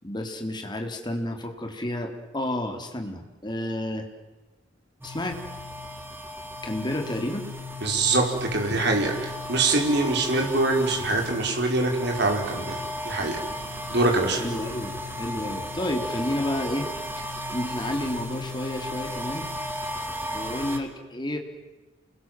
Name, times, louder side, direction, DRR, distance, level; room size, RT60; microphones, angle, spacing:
voice 1, 0.0-4.1 5.0-5.4 6.6-7.5 14.4-16.9 17.3-19.5 20.3-21.4, left 1 dB, 25° left, 4 dB, 3.7 m, -30 dB
sound 1, 5.0-20.8, left 1 dB, 10° right, 2.8 m, -35 dB
voice 2, 7.8-12.8 13.0-13.4 13.9-14.4, right 2 dB, 60° right, 2 dB, 5.2 m, -24 dB
29.0 x 22.0 x 7.7 m, 1.2 s
head